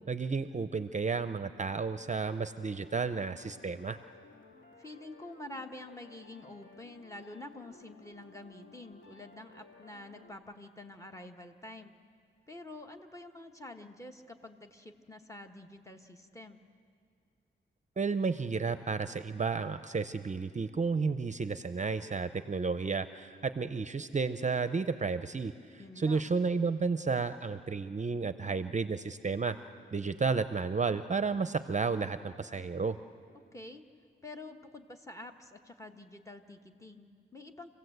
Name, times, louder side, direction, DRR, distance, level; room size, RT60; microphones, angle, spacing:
voice 1, 0.1-4.0 18.0-25.5 26.0-29.6 29.9-33.0, right 4 dB, 35° right, 11 dB, 0.6 m, -32 dB
sound 1, 2.2-10.4, left 3 dB, 75° left, 2.0 m, -57 dB
voice 2, 4.8-11.9 12.5-16.6 25.8-26.3 33.5-33.8 34.2-37.7, left 2 dB, 15° left, 6 dB, 1.4 m, -48 dB
27.0 x 16.5 x 7.9 m, 2.3 s
wide cardioid pair, 100°, 20 cm